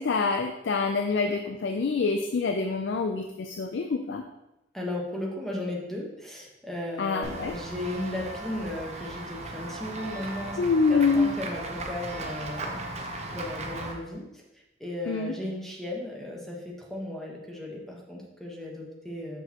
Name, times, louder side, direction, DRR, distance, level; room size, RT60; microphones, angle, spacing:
voice 1, 0.0-4.2 7.0-7.5 10.6-11.3 15.1-15.3, left 4 dB, 75° left, 5 dB, 0.4 m, -26 dB
voice 2, 4.7-14.4 14.8-19.4, left 1 dB, ahead, -2 dB, 1.1 m, -36 dB
Run / Walk footsteps / Bell, 7.2-13.9, right 2 dB, 40° right, 0.8 m, -37 dB
6.7 x 6.2 x 2.9 m, 0.95 s
head